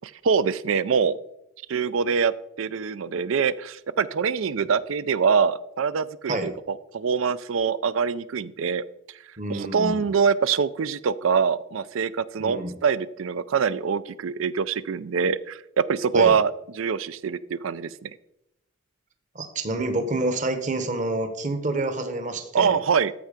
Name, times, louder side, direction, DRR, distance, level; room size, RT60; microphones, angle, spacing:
voice 1, 0.0-1.2 1.7-2.3 2.6-8.8 9.5-18.1 22.5-23.1, right 6 dB, 80° right, 17 dB, 0.4 m, -24 dB
voice 2, 9.4-10.0 12.4-12.7 16.1-16.3 19.3-22.7, right 2 dB, 40° right, 8 dB, 1.0 m, -28 dB
13.5 x 4.6 x 5.1 m, 0.85 s
head